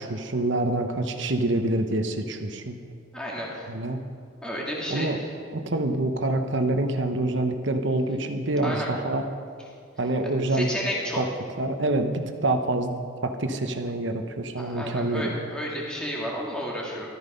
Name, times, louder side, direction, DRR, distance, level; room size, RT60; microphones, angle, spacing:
voice 1, 0.1-2.8 3.7-4.0 4.9-5.2 5.5-9.3 10.0-10.7 11.2-11.3 11.6-12.9 13.2-15.3, right 2 dB, 60° right, 6 dB, 1.0 m, -26 dB
voice 2, 3.1-3.7 4.4-5.1 8.6-8.9 10.5-11.2 14.6-17.1, equal, 5° left, -4 dB, 1.9 m, -31 dB
14.0 x 13.0 x 5.4 m, 2.2 s
head